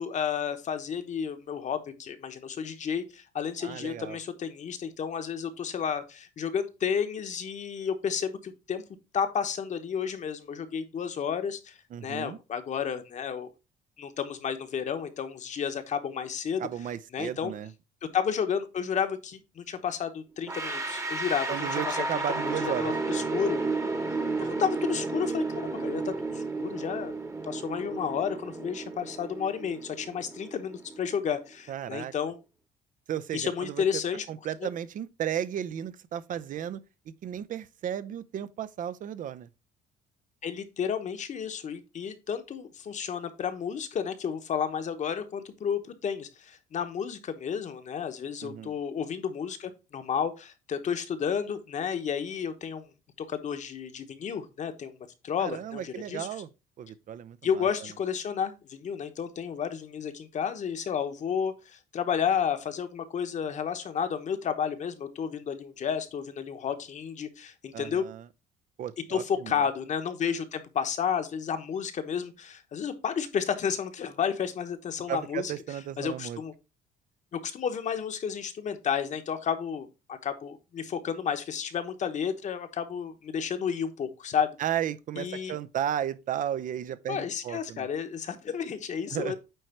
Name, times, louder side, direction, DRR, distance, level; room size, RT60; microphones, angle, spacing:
voice 1, 0.0-8.8 9.1-13.5 14.0-16.6 17.1-17.5 18.1-22.2 22.6-23.6 24.4-27.1 27.4-32.4 33.3-34.2 34.6-34.7 40.4-52.9 53.2-54.9 55.2-56.3 57.4-68.1 69.1-75.5 76.0-76.5 77.3-84.5 85.2-85.6 87.1-89.4, left 7 dB, 45° left, 1.1 m, -32 dB
voice 2, 3.6-4.2 11.9-12.4 16.6-17.7 21.5-23.0 31.7-32.1 33.1-33.8 34.3-36.8 37.2-39.5 48.4-48.7 55.4-56.5 56.8-57.7 67.7-68.3 68.8-69.6 75.1-76.4 84.6-87.9 89.1-89.4, right 10 dB, 50° right, 0.6 m, -34 dB
sound 1, 20.5-31.3, right 3 dB, 15° right, 1.1 m, -33 dB
9.0 x 3.2 x 4.4 m
cardioid pair, 110°, 17 cm